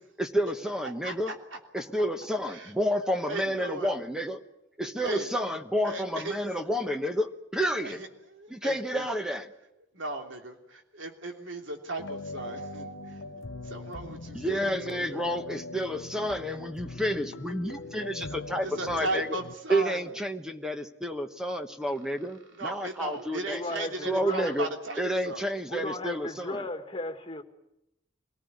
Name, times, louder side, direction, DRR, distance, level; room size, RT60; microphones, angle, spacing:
voice 1, 0.2-1.3 1.7-4.4 4.8-8.0 8.5-9.5 14.3-19.3 19.7-23.6 24.0-24.7 25.0-26.6, equal, 5° right, 1.1 m, -30 dB
voice 2, 0.8-1.6 2.5-2.7 3.3-3.9 5.0-5.3 5.8-6.4 7.8-9.1 9.9-13.1 13.6-15.3 18.6-20.0 22.6-25.5, right 2 dB, 75° right, 3.1 m, -37 dB
sound 1, 12.0-19.6, left 2 dB, 75° left, 1.0 m, -41 dB
voice 3, 23.4-24.6 25.7-27.4, left 2 dB, 25° left, 2.0 m, -35 dB
25.0 x 18.5 x 9.5 m
head